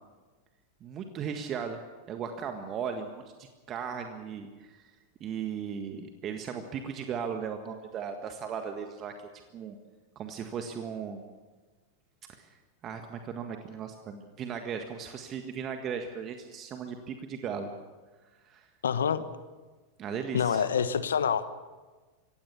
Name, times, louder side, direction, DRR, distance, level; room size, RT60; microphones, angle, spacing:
voice 1, 0.8-9.8 10.1-11.2 12.3-17.7 18.3-18.7 20.0-20.7, right 7 dB, 35° right, 6 dB, 1.7 m, -37 dB
voice 2, 18.8-19.2 20.3-21.4, left 7 dB, 75° left, 13 dB, 1.2 m, -26 dB
25.5 x 16.5 x 7.0 m, 1.3 s
figure-of-eight pair, 90°, 0 cm